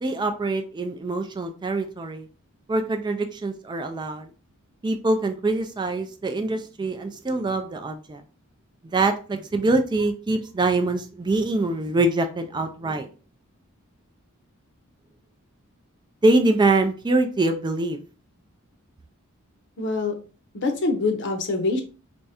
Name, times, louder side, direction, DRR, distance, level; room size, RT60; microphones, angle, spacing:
voice 1, 0.0-2.3 2.7-4.3 4.8-8.2 8.9-13.1 16.2-18.0, right 2 dB, 20° right, 6 dB, 0.3 m, -24 dB
voice 2, 19.8-20.1 20.5-21.8, left 3 dB, 55° left, 5 dB, 0.8 m, -24 dB
3.5 x 3.1 x 2.8 m, 0.36 s
head